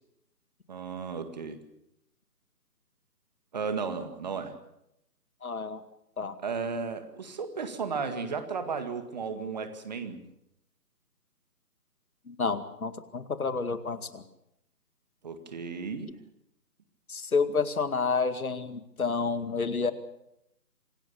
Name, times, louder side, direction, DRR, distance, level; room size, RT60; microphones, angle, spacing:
voice 1, 0.7-1.6 3.5-4.5 6.4-10.2 15.2-16.1, right 5 dB, 25° right, 8 dB, 2.0 m, -34 dB
voice 2, 5.4-5.8 6.2-6.4 12.3-14.2 17.1-19.9, left 4 dB, 60° left, 10 dB, 2.3 m, -29 dB
26.5 x 18.5 x 6.9 m, 0.82 s
figure-of-eight pair, 165°, 48 cm